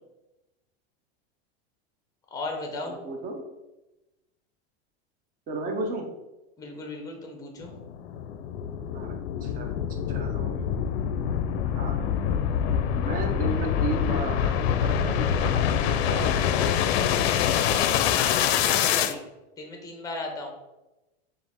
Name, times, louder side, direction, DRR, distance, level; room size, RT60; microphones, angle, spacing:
voice 1, 2.3-3.0 6.6-7.7 18.1-19.2 19.6-20.5, left 2 dB, 10° left, 3 dB, 0.7 m, -35 dB
voice 2, 2.8-3.4 5.5-6.1 8.9-9.2 9.4-9.7 10.1-10.6 11.7-12.0 12.9-16.7, right 2 dB, 25° right, 2 dB, 0.6 m, -34 dB
sound 1, 7.6-19.1, left 9 dB, 75° left, 0.5 m, -25 dB
4.9 x 2.5 x 3.4 m, 1.0 s
supercardioid pair, 145°, 32 cm